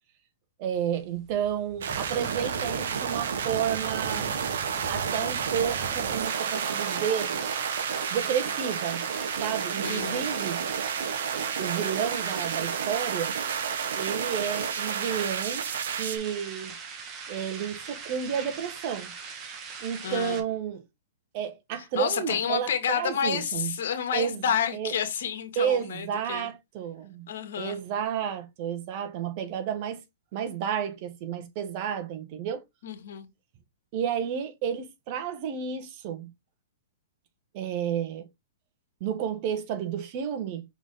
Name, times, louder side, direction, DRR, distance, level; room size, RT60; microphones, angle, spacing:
voice 1, 0.6-4.3 4.9-7.3 8.1-9.0 9.4-10.6 11.6-13.3 13.9-16.7 17.3-19.1 19.8-20.8 21.3-23.7 24.1-24.4 24.7-24.9 25.5-27.3 27.6-30.0 30.3-32.6 33.9-36.3 37.5-38.3 39.0-40.6, right 8 dB, 45° right, 1.5 m, -31 dB
sound 1, 0.7-20.4, right 5 dB, 30° right, 1.9 m, -41 dB
sound 2, 1.8-16.2, right 7 dB, 75° right, 1.2 m, -31 dB
voice 2, 9.8-10.3 20.0-20.4 21.8-26.5 27.3-27.8 32.8-33.3, left 8 dB, 65° left, 2.0 m, -30 dB
6.0 x 4.3 x 3.8 m
hypercardioid pair, 140°, 0 cm